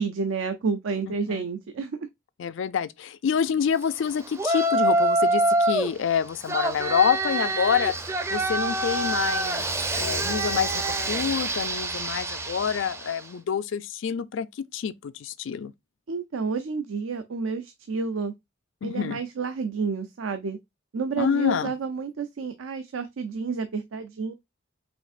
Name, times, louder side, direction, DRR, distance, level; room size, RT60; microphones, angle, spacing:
voice 1, 0.0-2.0 16.1-18.3 18.8-20.6 20.9-24.3, right 5 dB, 80° right, 0.5 m, -30 dB
voice 2, 1.1-1.4 2.4-7.9 8.3-9.7 10.0-10.8 11.1-15.7 18.8-19.2 21.2-21.7, left 7 dB, 65° left, 0.4 m, -27 dB
Yell, 4.4-5.9 6.5-13.2, right 2 dB, 15° right, 0.4 m, -26 dB
5.1 x 3.3 x 2.4 m
head